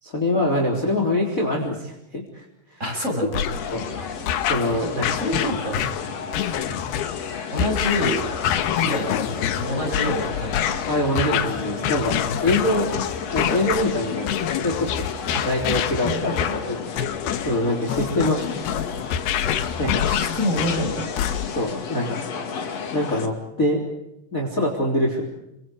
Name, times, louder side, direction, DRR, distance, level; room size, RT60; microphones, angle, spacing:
voice 1, 0.0-2.4 3.7-3.8 4.5-5.0 10.9-12.9 13.3-15.1 15.4-16.4 16.7-16.9 17.4-18.4 19.8-20.0 21.5-22.2 22.9-23.8 24.3-25.2, left 1 dB, 20° left, 2 dB, 3.8 m, -24 dB
voice 2, 2.8-3.4 5.1-5.8 7.5-8.2 8.7-10.7 15.3-15.5 16.0-16.6 18.1-18.3 20.0-21.1, left 1 dB, 15° right, 3 dB, 6.5 m, -27 dB
sound 1, 3.3-21.7, left 10 dB, 70° left, 3.2 m, -27 dB
sound 2, 3.5-23.3, left 5 dB, 45° left, 2.8 m, -33 dB
29.5 x 25.5 x 4.8 m, 0.83 s
omnidirectional pair, 4.8 m